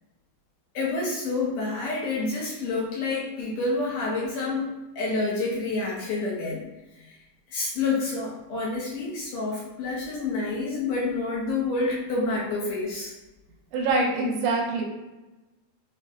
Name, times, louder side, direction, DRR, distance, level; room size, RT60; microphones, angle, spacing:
voice 1, 0.7-4.7 5.0-6.6 7.0-7.2 7.5-13.1, left 3 dB, 75° left, -5 dB, 1.9 m, -28 dB
voice 2, 13.7-14.8, right 3 dB, 85° right, -1 dB, 2.6 m, -24 dB
5.9 x 2.1 x 2.7 m, 1.1 s
omnidirectional pair, 4.5 m